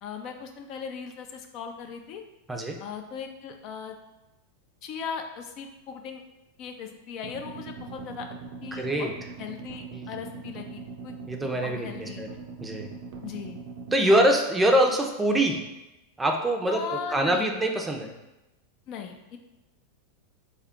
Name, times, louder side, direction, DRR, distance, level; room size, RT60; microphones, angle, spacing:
voice 1, 0.0-2.2 2.8-4.0 4.8-6.2 6.6-8.3 8.6-9.1 9.4-11.1 11.6-12.2 13.2-13.6 14.1-14.4 16.7-17.6 18.9-19.4, left 7 dB, 50° left, 5 dB, 0.4 m, -38 dB
sound 1, 7.2-14.0, right 4 dB, 60° right, 0.5 m, -41 dB
voice 2, 8.7-9.1 9.9-10.1 11.3-12.3 12.6-12.9 13.9-15.6 16.2-18.1, right 1 dB, 10° right, 2 dB, 0.5 m, -24 dB
3.6 x 2.3 x 3.6 m, 0.98 s
hypercardioid pair, 110°, 0 cm